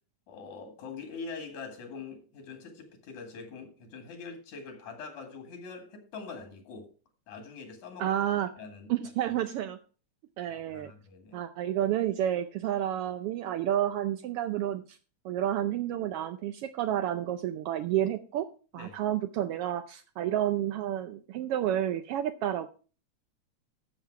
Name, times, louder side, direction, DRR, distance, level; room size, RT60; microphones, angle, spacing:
voice 1, 0.3-6.9 7.3-8.1 8.6-8.9 10.5-11.4 18.7-19.0, left 4 dB, 80° left, 3.4 m, -43 dB
voice 2, 8.0-8.5 8.9-9.8 10.4-10.9 11.3-15.0 15.2-18.5 18.7-22.7, right 11 dB, 80° right, 1.3 m, -30 dB
12.0 x 7.1 x 4.6 m
omnidirectional pair, 3.3 m